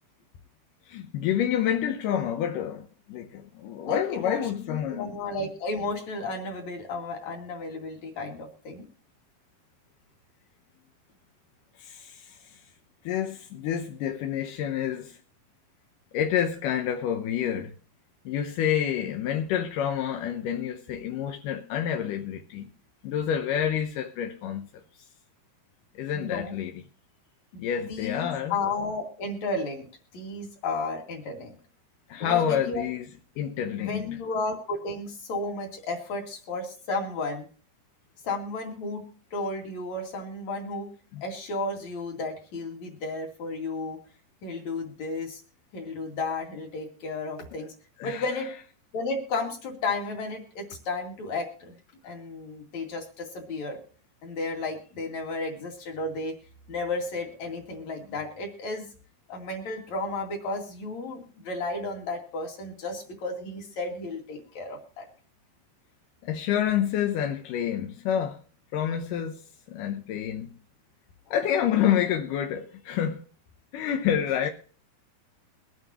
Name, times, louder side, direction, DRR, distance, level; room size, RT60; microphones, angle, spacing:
voice 1, 0.9-5.1 11.8-12.4 13.1-15.2 16.1-17.7 18.3-22.7 23.0-24.7 26.0-26.8 27.6-28.5 32.1-33.1 33.4-34.1 41.1-41.2 48.0-48.3 66.2-68.4 68.7-69.4 69.7-70.6 71.3-73.2 73.7-74.5, left 9 dB, 75° left, 2.0 m, -28 dB
voice 2, 3.8-8.8 26.1-26.5 27.5-29.9 30.1-31.5 32.2-32.9 33.8-37.5 38.2-39.0 39.3-40.9 41.2-44.0 44.4-45.4 45.7-47.7 48.0-48.5 48.9-51.7 52.0-53.8 54.2-56.4 56.7-58.9 59.3-65.1, left 3 dB, 50° left, 3.2 m, -33 dB
23.0 x 9.3 x 2.9 m
omnidirectional pair, 4.7 m